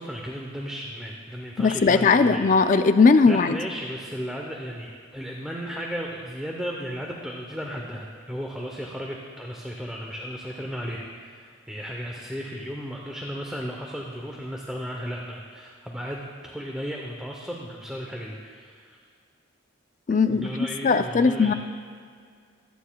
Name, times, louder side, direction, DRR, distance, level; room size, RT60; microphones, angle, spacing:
voice 1, 0.0-2.5 3.3-19.0 20.1-21.5, equal, 5° right, -1 dB, 0.7 m, -35 dB
voice 2, 1.6-3.6 20.1-20.5 20.8-21.5, left 4 dB, 40° left, 10 dB, 0.4 m, -18 dB
24.5 x 9.3 x 2.3 m, 2.1 s
head